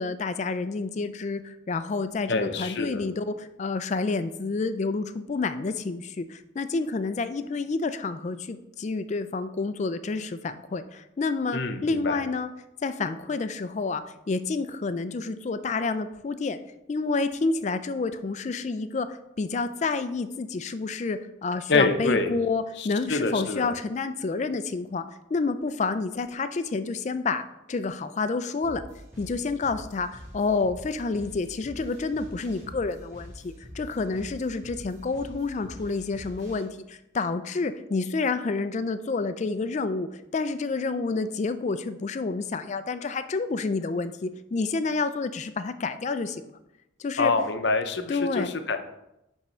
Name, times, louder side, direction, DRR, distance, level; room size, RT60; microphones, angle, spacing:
voice 1, 0.0-12.5 12.8-16.6 16.9-25.0 25.3-28.8 29.2-46.6 47.0-47.3 48.1-48.5, left 3 dB, 35° left, 11 dB, 0.3 m, -29 dB
voice 2, 2.3-3.0 11.5-12.2 21.7-22.4 22.8-23.7 47.2-48.8, left 3 dB, 60° left, 7 dB, 0.7 m, -26 dB
sound 1, 28.6-36.6, equal, 15° right, 2.8 m, -45 dB
10.0 x 3.6 x 4.3 m, 0.87 s
head